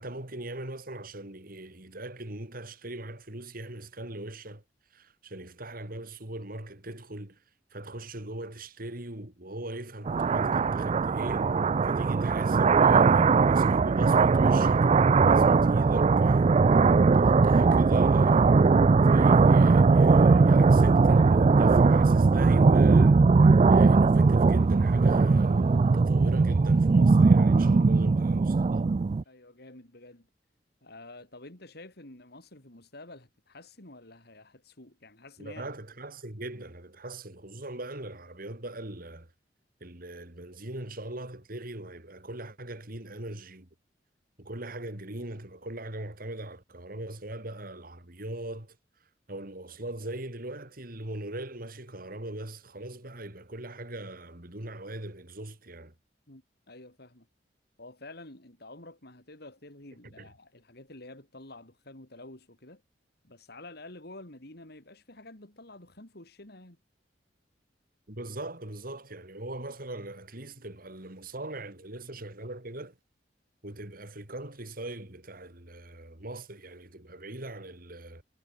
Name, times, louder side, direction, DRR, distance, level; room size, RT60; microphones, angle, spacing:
voice 1, 0.0-4.6 4.9-7.4 7.7-16.5 17.1-18.6 19.1-23.2 23.7-28.9 35.4-39.3 39.8-43.7 44.4-48.8 49.3-55.9 60.2-60.3 68.1-72.9 73.6-78.2, right 1 dB, 55° right, 3.7 m, -40 dB
sound 1, 10.1-29.2, right 4 dB, 35° right, 0.4 m, -20 dB
Car, 22.7-28.2, left 1 dB, 35° left, 3.2 m, -58 dB
voice 2, 29.2-30.3 30.8-35.7 56.3-57.3 57.8-62.8 63.2-66.8, left 2 dB, 60° left, 4.3 m, -49 dB
head